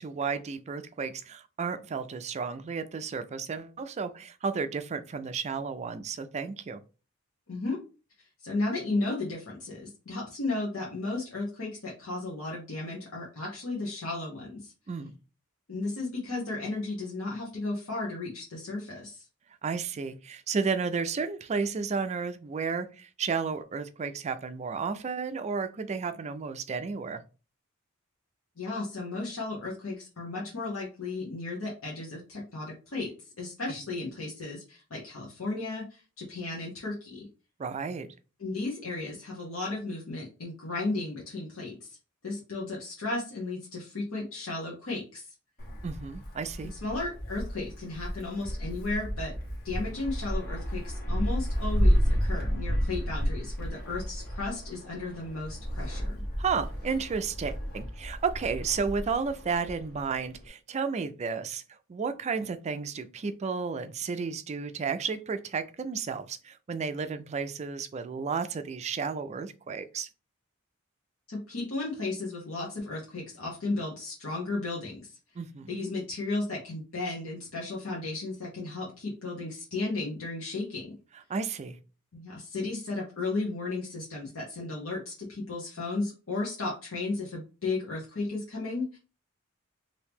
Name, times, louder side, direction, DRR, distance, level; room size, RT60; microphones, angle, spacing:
voice 1, 0.0-6.8 14.9-15.1 19.6-27.2 37.6-38.1 45.8-46.7 56.4-61.6 61.9-70.1 75.4-75.9 81.3-81.8, right 5 dB, 30° right, 0.3 m, -32 dB
voice 2, 7.5-7.8 8.2-14.7 15.7-19.2 28.6-37.3 38.4-42.0 42.2-45.3 46.7-49.3 49.6-56.2 71.3-75.2 75.7-81.0 82.1-89.0, left 2 dB, 75° left, 1.0 m, -34 dB
Wind, 45.6-60.5, equal, 50° left, 1.1 m, -31 dB
2.9 x 2.7 x 3.5 m
head